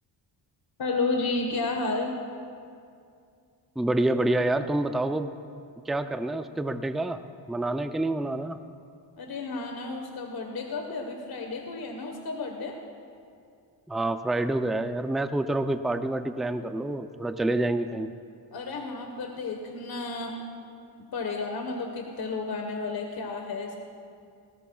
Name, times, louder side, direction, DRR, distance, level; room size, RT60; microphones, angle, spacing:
voice 1, 0.8-2.2 9.2-12.8 18.5-20.4 21.1-23.8, left 3 dB, 55° left, 3 dB, 1.3 m, -32 dB
voice 2, 3.8-5.3 5.9-7.2 7.5-8.6 13.9-18.1, right 2 dB, ahead, 9 dB, 0.4 m, -27 dB
19.5 x 18.5 x 2.3 m, 2.4 s
cardioid pair, 90°, 43 cm